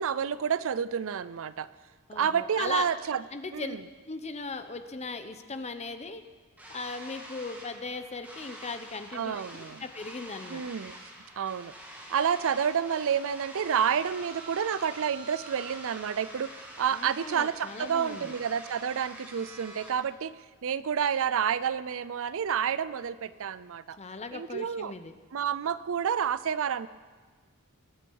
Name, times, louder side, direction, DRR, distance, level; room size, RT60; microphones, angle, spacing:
voice 1, 0.0-1.7 2.1-3.2 3.5-3.8 9.1-9.8 10.5-11.0 11.4-11.7 12.1-16.5 16.8-20.3 20.6-24.0 24.3-24.9 25.3-26.9, right 7 dB, 65° right, 16 dB, 0.5 m, -29 dB
voice 2, 2.1-2.9 3.3-3.8 4.0-6.2 6.7-10.6 16.9-18.3 24.0-25.1, left 4 dB, 30° left, 9 dB, 0.8 m, -38 dB
sound 1, 6.6-19.9, right 1 dB, 10° right, 2.2 m, -46 dB
22.5 x 9.8 x 4.7 m, 1.4 s
head